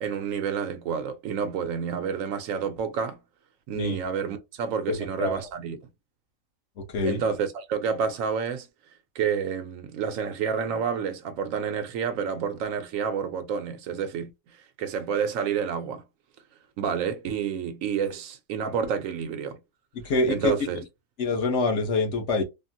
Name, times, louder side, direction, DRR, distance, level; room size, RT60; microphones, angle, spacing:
voice 1, 0.0-3.2 3.7-5.8 7.0-8.7 9.1-16.0 16.8-19.6 20.3-20.8, right 7 dB, 75° right, 1.0 m, -29 dB
voice 2, 4.9-5.4 6.9-7.2 20.0-20.5 21.2-22.4, left 3 dB, 60° left, 1.0 m, -25 dB
3.5 x 2.0 x 2.6 m
omnidirectional pair, 1.5 m